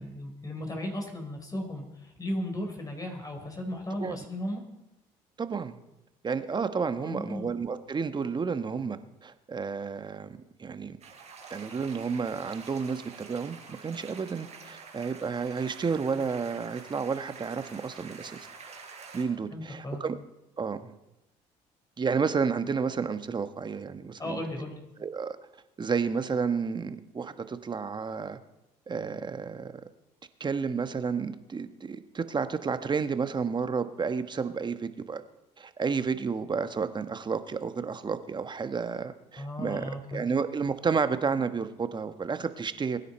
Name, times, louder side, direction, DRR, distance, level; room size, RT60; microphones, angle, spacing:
voice 1, 0.0-4.6 7.0-7.5 19.5-20.0 24.2-24.8 39.4-40.2, left 1 dB, 25° left, 3 dB, 4.0 m, -35 dB
voice 2, 5.4-5.8 6.2-11.0 11.5-13.0 13.3-18.5 19.1-20.1 20.6-20.9 22.0-24.4 25.0-25.4 25.8-28.4 28.9-29.7 30.4-35.2 35.6-43.0, right 5 dB, 30° right, 10 dB, 1.2 m, -31 dB
sound 1, 11.0-19.2, right 5 dB, 50° right, 4.6 m, -47 dB
22.0 x 9.9 x 4.4 m, 0.92 s
supercardioid pair, 70°, 14 cm